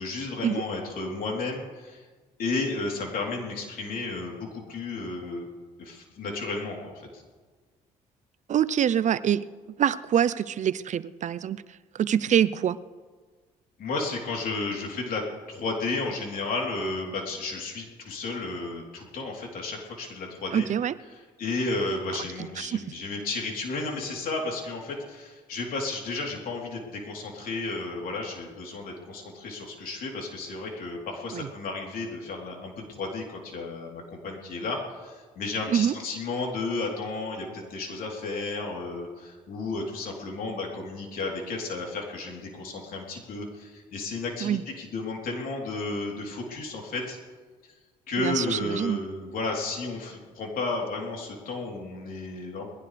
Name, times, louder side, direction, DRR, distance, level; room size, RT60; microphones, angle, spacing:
voice 1, 0.0-2.1 2.4-5.5 5.8-7.2 13.8-20.7 21.4-47.2 48.1-52.7, left 3 dB, 65° left, -1 dB, 3.5 m, -33 dB
voice 2, 8.5-12.8 20.5-21.0 22.4-22.8 31.3-31.5 35.7-36.0 44.4-44.6 48.2-49.0, right 9 dB, 50° right, 17 dB, 0.5 m, -25 dB
21.0 x 16.0 x 3.4 m, 1.4 s
supercardioid pair, 75°, 16 cm